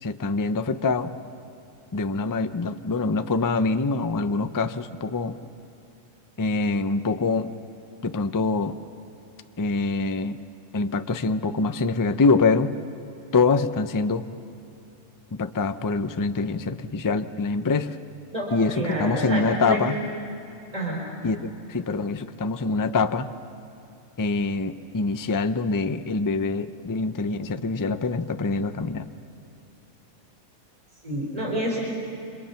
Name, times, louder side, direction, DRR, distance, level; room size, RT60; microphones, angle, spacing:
voice 1, 0.0-1.1 1.9-5.3 6.4-7.5 8.0-8.8 9.6-10.4 10.7-12.7 13.3-14.3 15.3-18.0 18.5-20.0 21.2-23.3 24.2-29.0, left 3 dB, 30° left, 10 dB, 0.3 m, -25 dB
voice 2, 18.3-19.8 20.7-21.0 31.0-31.8, equal, 25° right, -2 dB, 4.3 m, -28 dB
30.0 x 26.0 x 5.8 m, 2.9 s
omnidirectional pair, 1.5 m